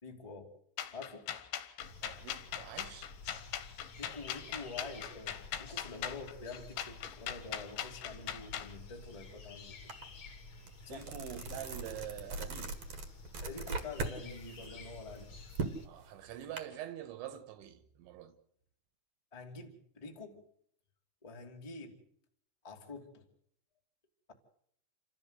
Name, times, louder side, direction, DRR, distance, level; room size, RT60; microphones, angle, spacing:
voice 1, 0.0-0.5 0.9-1.3 4.0-9.9 10.8-11.0 13.4-15.3 19.3-20.4 21.2-22.0 22.6-23.2, left 3 dB, 20° left, 0.8 m, -47 dB
sound 1, 0.8-8.7, left 11 dB, 70° left, 2.9 m, -40 dB
sound 2, 1.8-15.9, left 4 dB, 40° left, 2.0 m, -52 dB
voice 2, 2.0-3.1 10.9-12.8 15.8-18.4, right 11 dB, 75° right, 3.2 m, -45 dB
sound 3, 9.9-10.0 10.4-14.2 14.5-16.6, right 3 dB, 55° right, 1.9 m, -40 dB
28.5 x 13.5 x 8.1 m
omnidirectional pair, 5.8 m